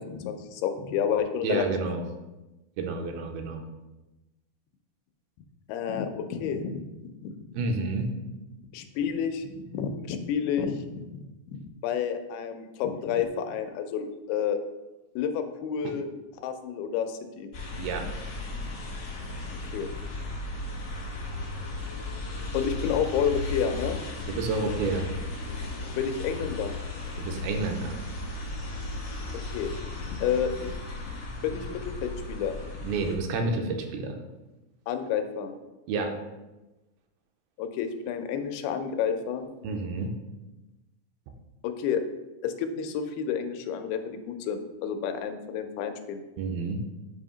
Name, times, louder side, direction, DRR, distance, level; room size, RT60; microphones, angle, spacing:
voice 1, 0.0-1.7 5.7-6.8 7.7-7.8 8.7-11.2 11.5-14.6 15.2-16.1 16.4-17.5 19.7-19.9 22.5-24.0 26.0-26.7 29.5-29.7 30.1-30.8 31.4-32.6 34.9-35.5 37.6-39.5 41.6-42.0 42.4-46.2, left 7 dB, 90° left, 7 dB, 2.5 m, -30 dB
voice 2, 1.4-2.0 2.8-3.6 7.6-8.1 17.8-18.1 24.3-25.1 27.2-27.9 32.8-34.2 35.9-36.1 39.6-40.1 46.4-46.8, right 3 dB, 85° right, 3 dB, 2.5 m, -29 dB
sound 1, 17.5-33.2, left 2 dB, 65° left, 1.0 m, -35 dB
7.7 x 2.8 x 4.9 m, 1.1 s
omnidirectional pair, 4.4 m